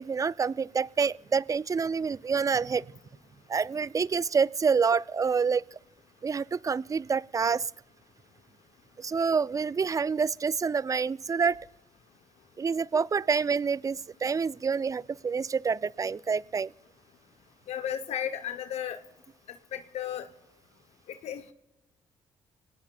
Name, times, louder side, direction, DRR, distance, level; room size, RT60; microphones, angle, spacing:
voice 1, 0.0-2.9 3.5-5.8 6.2-7.7 9.0-11.6 12.6-16.7, right 5 dB, 30° right, 21 dB, 0.4 m, -27 dB
voice 2, 17.7-19.0 19.7-20.3 21.1-21.5, left 9 dB, 75° left, 10 dB, 0.8 m, -34 dB
25.0 x 18.0 x 2.3 m, 0.97 s
supercardioid pair, 60°, 11 cm